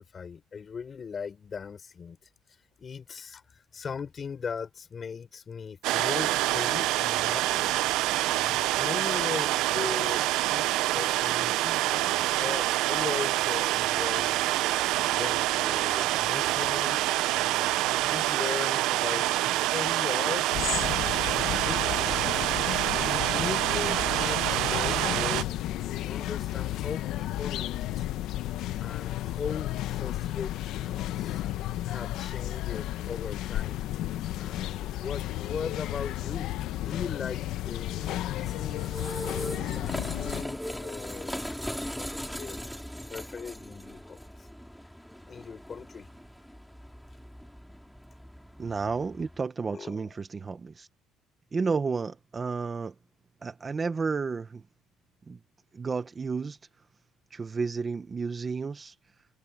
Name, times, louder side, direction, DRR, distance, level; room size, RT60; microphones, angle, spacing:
voice 1, 0.0-2.2 2.8-7.7 8.3-10.2 10.5-14.5 15.0-20.6 21.2-22.1 22.4-28.1 28.8-31.4 31.8-33.8 34.1-41.7 42.0-42.6 43.1-44.5 45.3-46.1 49.7-50.0, left 6 dB, 25° left, 4.4 m, -39 dB
sound 1, 5.8-25.4, right 17 dB, 75° right, 0.5 m, -26 dB
sound 2, 20.5-40.4, left 14 dB, 60° left, 0.9 m, -33 dB
sound 3, 38.0-49.4, equal, ahead, 3.5 m, -40 dB
voice 2, 48.6-50.9 51.5-52.9 53.4-54.6 55.3-55.4 55.7-56.6 57.3-58.9, right 4 dB, 20° right, 0.9 m, -31 dB
open air
cardioid pair, 170°, 0 cm